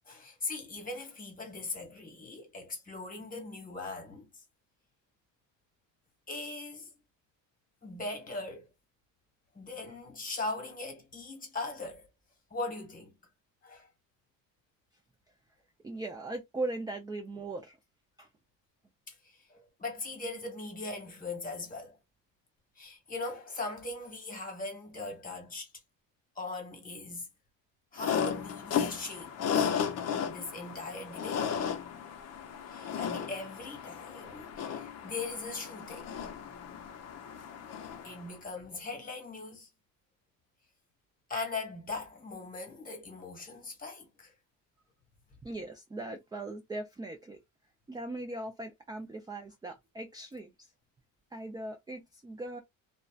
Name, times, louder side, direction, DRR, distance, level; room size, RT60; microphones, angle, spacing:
voice 1, 0.1-4.4 6.3-6.9 7.8-8.7 9.5-12.1 12.5-13.2 13.6-13.9 19.1-22.0 22.8-25.7 26.3-27.3 27.9-29.7 30.2-31.5 32.7-36.1 38.0-39.7 41.3-44.3, left 3 dB, 25° left, 1.3 m, -40 dB
voice 2, 15.8-17.8 18.2-18.3 45.4-47.4 47.9-50.7 51.3-52.6, right 2 dB, 10° right, 0.3 m, -39 dB
sound 1, 28.0-38.3, left 7 dB, 45° left, 0.6 m, -35 dB
2.6 x 2.1 x 2.3 m
cardioid pair, 135°, 35 cm